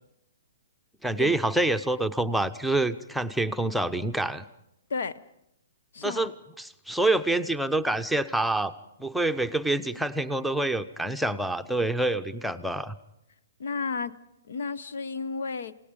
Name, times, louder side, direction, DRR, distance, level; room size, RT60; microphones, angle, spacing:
voice 1, 1.0-4.4 6.0-6.3 6.6-8.7 9.0-12.9, right 2 dB, ahead, 6 dB, 0.8 m, -27 dB
voice 2, 4.9-5.2 5.9-6.3 13.6-14.1 14.5-15.7, left 4 dB, 70° left, 16 dB, 0.9 m, -32 dB
28.5 x 18.0 x 5.3 m, 0.81 s
hypercardioid pair, 125°, 0 cm